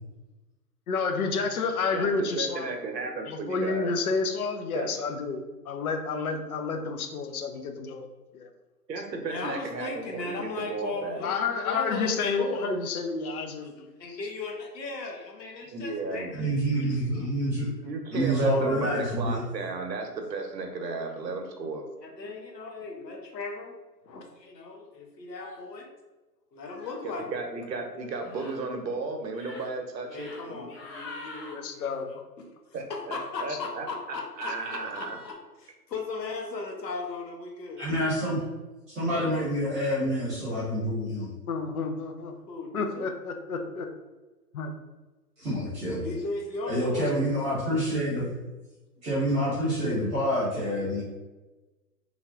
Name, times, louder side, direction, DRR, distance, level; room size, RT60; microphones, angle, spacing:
voice 1, 0.9-2.7 3.3-8.1 8.3-8.5 11.2-13.7 31.6-32.1 41.5-42.3 42.7-43.9 44.5-44.7, left 4 dB, 60° left, 5 dB, 0.6 m, -30 dB
voice 2, 1.9-3.9 4.7-4.9 8.9-11.2 15.6-16.9 17.8-21.9 27.0-30.7 32.7-35.2, right 3 dB, 80° right, 4 dB, 0.8 m, -35 dB
voice 3, 9.2-12.8 14.0-17.5 22.0-23.7 24.0-25.9 26.5-27.4 30.1-37.8 42.5-43.2 45.9-47.2, left 3 dB, 80° left, 1 dB, 0.9 m, -37 dB
voice 4, 16.3-17.7 18.1-19.4 37.8-38.4 38.9-41.3 45.4-46.1 46.7-48.3 49.0-51.0, equal, 15° right, -10 dB, 0.9 m, -27 dB
sound 1, 25.4-25.6 26.7-27.0 28.2-28.6 29.2-29.6 30.1-30.4 30.7-31.5 34.3-35.3, left 2 dB, 20° left, 0.7 m, -45 dB
3.2 x 2.4 x 2.3 m, 1.2 s
hypercardioid pair, 140°, 50 cm